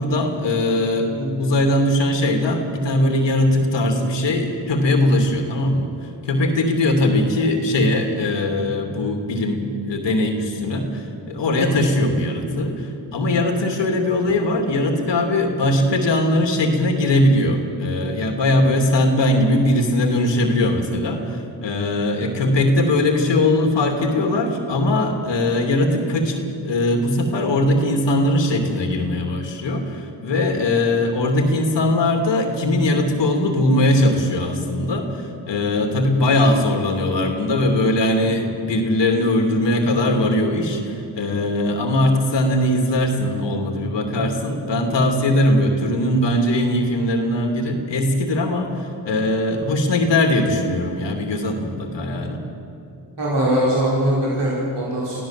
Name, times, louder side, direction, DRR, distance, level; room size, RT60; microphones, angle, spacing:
voice 1, 0.0-52.4, left 1 dB, 80° left, 3 dB, 2.8 m, -20 dB
voice 2, 53.2-55.2, right 1 dB, 70° right, -6 dB, 5.4 m, -21 dB
23.0 x 15.5 x 7.6 m, 2.6 s
cardioid pair, 70°, 43 cm